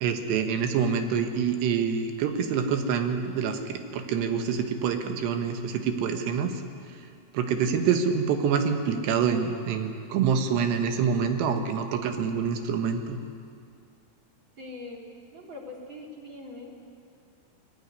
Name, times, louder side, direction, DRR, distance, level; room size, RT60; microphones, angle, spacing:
voice 1, 0.0-6.5 7.3-13.2, right 6 dB, 85° right, 6 dB, 3.5 m, -26 dB
voice 2, 14.6-15.0 15.3-16.7, left 2 dB, 35° right, -1 dB, 2.7 m, -42 dB
21.0 x 15.0 x 9.7 m, 2.4 s
omnidirectional pair, 4.8 m